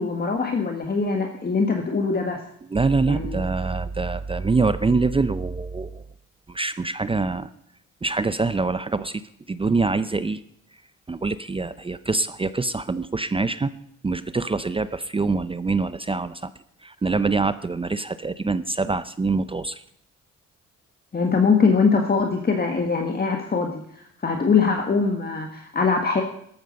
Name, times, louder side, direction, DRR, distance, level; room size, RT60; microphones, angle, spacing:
voice 1, 0.0-2.4 3.1-3.4 21.1-26.2, left 5 dB, 30° left, 3 dB, 1.6 m, -22 dB
voice 2, 2.7-6.0 6.5-7.5 8.0-9.2 9.5-10.4 11.1-13.7 14.0-16.5 16.8-19.8, right 3 dB, 20° right, 13 dB, 0.6 m, -24 dB
14.0 x 12.5 x 5.3 m, 0.69 s
cardioid pair, 90°, 30 cm